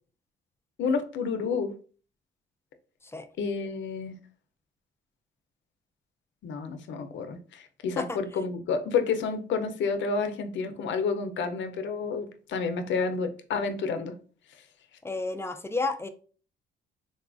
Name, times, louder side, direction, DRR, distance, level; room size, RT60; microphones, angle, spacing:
voice 1, 0.8-1.7 3.4-4.2 6.4-14.2, left 5 dB, 70° left, 8 dB, 0.6 m, -30 dB
voice 2, 15.0-16.1, left 3 dB, 10° left, 8 dB, 0.4 m, -31 dB
3.9 x 2.3 x 2.4 m, 0.40 s
cardioid pair, 90°, 20 cm